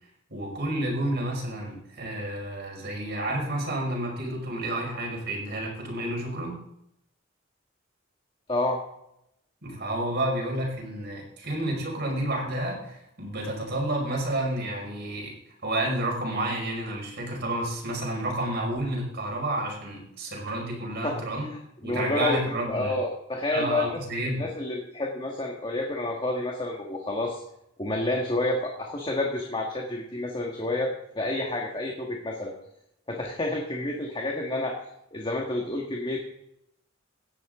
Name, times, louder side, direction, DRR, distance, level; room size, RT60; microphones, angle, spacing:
voice 1, 0.3-6.6 9.6-21.5 21.8-23.0 23.5-24.5, right 1 dB, 55° right, 0 dB, 5.4 m, -30 dB
voice 2, 8.5-8.8 21.0-21.2 21.8-22.4 22.7-24.0 24.4-27.4 27.8-32.5 33.1-34.8 35.1-36.2, left 2 dB, 25° left, 0 dB, 1.9 m, -29 dB
17.0 x 11.0 x 3.9 m, 0.78 s
head